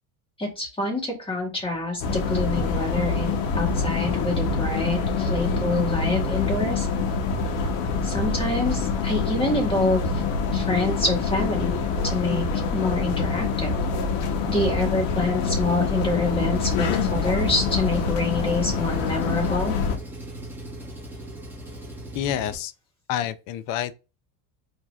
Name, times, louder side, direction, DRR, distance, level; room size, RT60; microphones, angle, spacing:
voice 1, 0.4-6.9 8.0-10.2 10.5-12.5 12.7-13.7 14.5-19.7, left 2 dB, 15° left, 1.7 m, -26 dB
sound 1, 2.0-20.0, left 4 dB, 70° left, 1.0 m, -25 dB
Engine, 16.5-22.6, right 1 dB, 5° right, 1.4 m, -39 dB
voice 2, 22.1-22.7 23.1-23.9, left 11 dB, 50° left, 0.5 m, -28 dB
4.7 x 2.8 x 2.4 m
cardioid pair, 140°, 41 cm